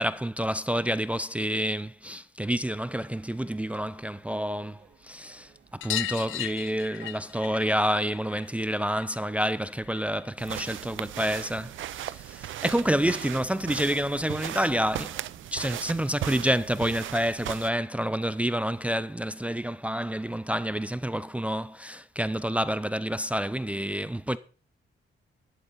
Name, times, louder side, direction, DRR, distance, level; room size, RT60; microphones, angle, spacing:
voice 1, 0.0-15.2 15.5-24.4, equal, 5° right, 0.4 m, -28 dB
sound 1, 2.6-10.3, right 6 dB, 55° right, 3.0 m, -59 dB
sound 2, 5.8-10.9 11.2-12.3 13.7-13.8 14.0-14.1 14.4-14.5 15.8-15.9 16.2-16.3 16.6-16.7 17.9-18.0 18.8-18.9, left 13 dB, 75° left, 0.5 m, -38 dB
sound 3, 10.4-17.7, right 13 dB, 75° right, 0.5 m, -37 dB
12.0 x 11.0 x 4.1 m
cardioid pair, 130°, 20 cm